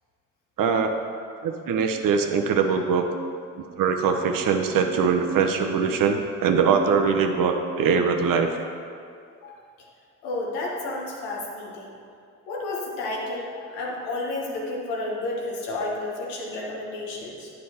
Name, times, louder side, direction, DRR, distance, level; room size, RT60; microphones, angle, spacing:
voice 1, 0.6-0.9 1.4-3.1 3.8-8.5, right 6 dB, 60° right, 4 dB, 0.9 m, -22 dB
voice 2, 10.2-11.9 12.5-17.5, left 2 dB, 85° left, -2 dB, 1.3 m, -31 dB
9.4 x 5.2 x 4.2 m, 2.4 s
hypercardioid pair, 45°, 37 cm